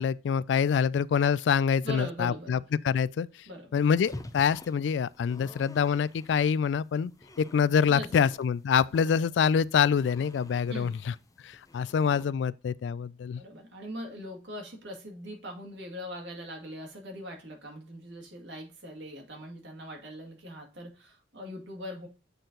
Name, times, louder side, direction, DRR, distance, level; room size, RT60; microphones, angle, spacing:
voice 1, 0.0-2.6 2.8-3.3 3.7-7.1 7.4-11.1 11.4-13.4, left 7 dB, 80° left, 0.3 m, -26 dB
voice 2, 1.8-2.6 3.5-3.8 7.9-8.3 9.2-9.3 10.7-10.9 13.4-22.1, equal, 90° right, 2.3 m, -41 dB
sound 1, 3.7-12.2, left 1 dB, 20° left, 0.6 m, -50 dB
8.1 x 4.4 x 3.8 m
head